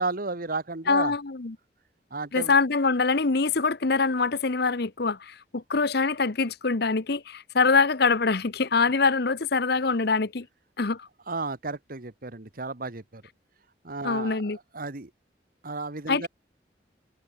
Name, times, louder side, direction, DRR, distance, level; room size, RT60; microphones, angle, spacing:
voice 1, 0.0-1.1 2.1-2.5 11.3-13.2 13.8-15.1 15.6-16.3, right 3 dB, 50° right, 1.5 m, -33 dB
voice 2, 0.9-1.6 2.3-10.5 10.8-11.1 14.0-14.6 16.1-16.3, left 4 dB, 60° left, 1.0 m, -24 dB
head